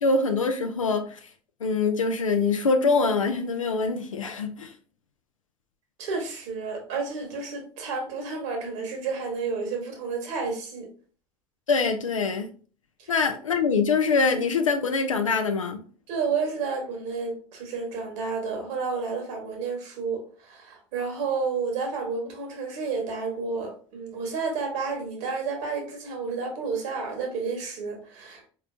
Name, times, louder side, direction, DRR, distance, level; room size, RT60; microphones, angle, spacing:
voice 1, 0.0-1.2 1.6-4.7 11.7-12.5 13.1-15.8, left 4 dB, 85° left, 0.6 m, -24 dB
voice 2, 6.0-10.9 13.0-13.1 16.1-28.5, right 4 dB, 65° right, 1.7 m, -31 dB
4.6 x 3.7 x 2.5 m
figure-of-eight pair, 65°, 16 cm